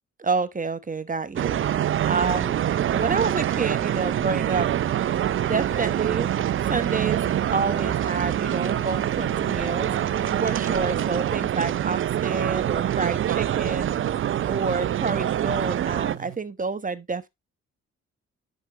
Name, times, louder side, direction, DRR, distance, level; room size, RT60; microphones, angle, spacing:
voice 1, 0.2-1.6 2.1-2.6 2.9-4.7 5.4-6.3 6.7-9.9 10.4-13.9 14.4-17.3, right 4 dB, 25° right, 1.2 m, -28 dB
sound 1, 1.4-16.2, right 11 dB, 40° right, 0.4 m, -25 dB
sound 2, 1.6-16.4, right 22 dB, 85° right, 0.6 m, -42 dB
sound 3, 3.8-11.2, left 13 dB, 75° left, 1.2 m, -46 dB
9.6 x 6.1 x 3.0 m
hypercardioid pair, 50°, 33 cm